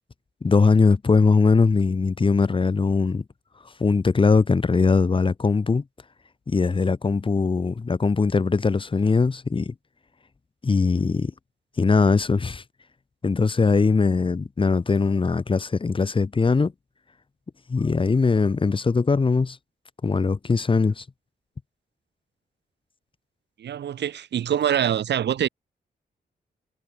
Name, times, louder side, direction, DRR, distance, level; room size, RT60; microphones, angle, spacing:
voice 1, 0.4-3.2 3.8-5.8 6.5-9.7 10.6-11.3 11.8-12.6 13.2-16.7 17.7-19.6 20.0-21.0, left 4 dB, 30° left, 3.0 m, -21 dB
voice 2, 23.6-25.5, right 10 dB, 90° right, 1.1 m, -24 dB
wide cardioid pair, 165°, 17 cm